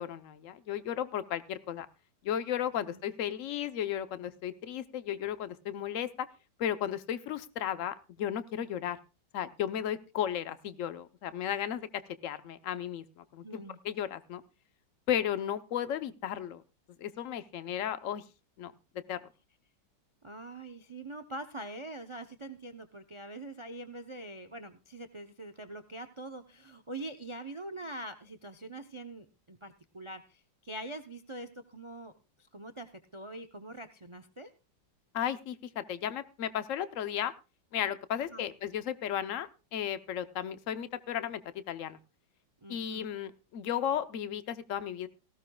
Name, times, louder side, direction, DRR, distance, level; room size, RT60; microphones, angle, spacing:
voice 1, 0.0-1.9 2.2-6.3 6.6-9.0 9.3-11.9 12.2-14.4 15.1-16.6 17.0-18.2 18.6-18.7 19.1-19.2 35.1-37.3 37.7-41.4 41.7-42.0 42.7-45.1, left 10 dB, 55° left, 12 dB, 1.0 m, -34 dB
voice 2, 13.4-13.8 20.2-32.1 32.5-34.5 38.3-38.4 42.6-43.1, right 1 dB, 40° right, 10 dB, 0.4 m, -44 dB
18.0 x 15.5 x 2.3 m, 0.30 s
omnidirectional pair, 2.0 m